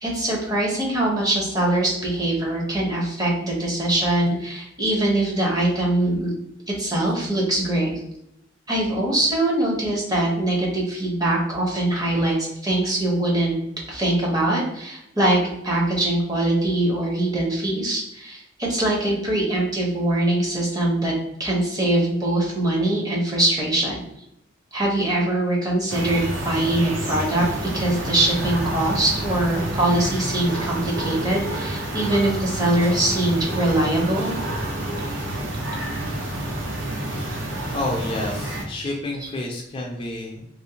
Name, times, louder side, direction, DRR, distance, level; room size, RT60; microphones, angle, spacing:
voice 1, 0.0-6.3 6.7-7.9 8.7-13.6 13.9-21.1 21.4-24.0 24.7-27.5 27.7-34.4, right 1 dB, 20° right, -3 dB, 0.7 m, -22 dB
sound 1, 25.9-38.6, right 1 dB, 65° right, 0.6 m, -29 dB
voice 2, 37.7-40.5, left 1 dB, 25° left, -1 dB, 0.3 m, -29 dB
2.5 x 2.1 x 2.7 m, 0.77 s
head